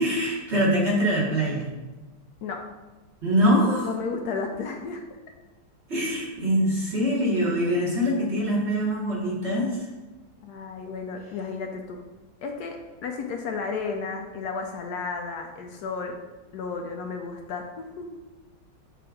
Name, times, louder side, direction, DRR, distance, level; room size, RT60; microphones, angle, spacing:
voice 1, 0.0-1.7 3.2-3.9 5.9-9.9, equal, 40° right, -5 dB, 1.6 m, -23 dB
voice 2, 3.8-5.0 10.4-12.0 12.4-16.1 16.5-18.2, left 4 dB, 70° left, 3 dB, 1.1 m, -33 dB
6.9 x 3.3 x 4.9 m, 1.2 s
omnidirectional pair, 1.9 m